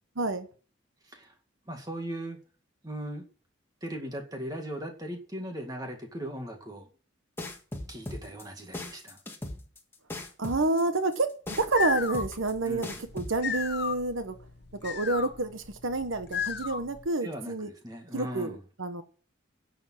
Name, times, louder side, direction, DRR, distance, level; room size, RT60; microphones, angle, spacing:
voice 1, 0.2-0.5 10.4-14.4 14.8-17.7 18.1-19.0, right 2 dB, 75° right, 9 dB, 1.1 m, -29 dB
voice 2, 1.7-2.4 2.8-3.2 3.8-6.9 7.9-9.2 12.6-13.0 17.2-18.6, equal, 20° right, 3 dB, 2.1 m, -38 dB
sound 1, 7.4-13.4, left 1 dB, 10° left, 1.6 m, -38 dB
sound 2, 11.5-17.1, left 6 dB, 55° left, 1.0 m, -35 dB
10.5 x 7.1 x 7.5 m, 0.39 s
head